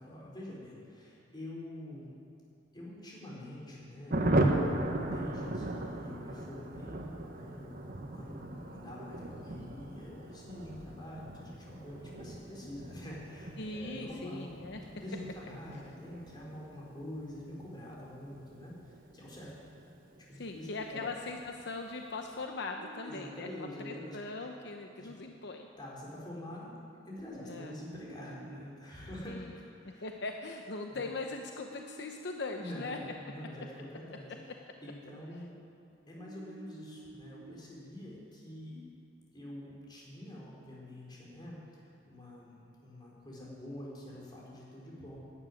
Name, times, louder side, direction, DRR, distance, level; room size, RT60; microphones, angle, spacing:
voice 1, 0.0-2.1 2.7-4.2 4.6-7.0 7.3-7.7 8.1-14.5 15.0-19.5 20.3-21.1 23.0-24.5 24.9-25.1 25.8-26.7 27.1-30.0 30.9-31.1 32.6-34.3 34.8-35.5 36.1-38.8 39.3-45.2, left 1 dB, 25° left, -4 dB, 4.3 m, -46 dB
Thunder, 4.1-20.2 20.5-20.6 20.9-21.0 21.3-21.7, right 1 dB, 50° right, 1.3 m, -37 dB
voice 2, 13.6-14.8 20.4-23.5 23.8-25.7 27.3-27.7 29.2-29.5 30.0-33.0, left 3 dB, 65° left, 3 dB, 0.8 m, -40 dB
sound 1, 22.8-24.1 27.2-28.6 31.7-33.1 36.2-37.6, right 3 dB, 80° right, 1.0 m, -51 dB
12.0 x 9.9 x 9.2 m, 2.6 s
head